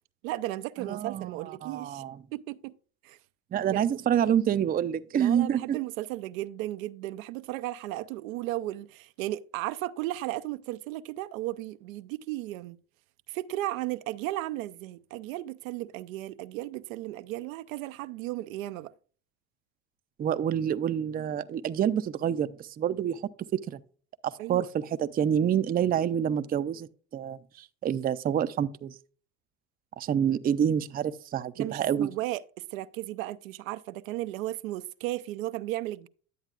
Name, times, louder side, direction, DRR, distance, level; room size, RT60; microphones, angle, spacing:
voice 1, 0.2-2.0 2.3-2.7 3.0-3.2 3.7-3.8 5.1-12.8 13.3-18.9 24.4-24.7 31.6-32.4 32.7-36.1, right 16 dB, 80° right, 0.6 m, -35 dB
voice 2, 0.8-2.2 3.5-5.8 20.2-23.2 23.7-23.8 24.2-28.9 30.0-32.1, right 9 dB, 25° right, 0.4 m, -27 dB
10.5 x 8.0 x 2.4 m
hypercardioid pair, 85°, 40 cm